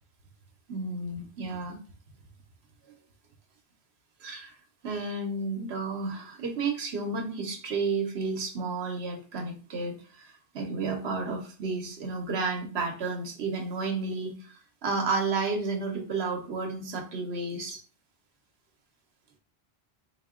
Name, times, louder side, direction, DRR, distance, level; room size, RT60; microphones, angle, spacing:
voice 1, 0.7-1.8 4.2-4.5 4.8-17.8, right 3 dB, 85° right, 3 dB, 1.1 m, -32 dB
3.6 x 2.6 x 3.5 m, 0.39 s
omnidirectional pair, 1.0 m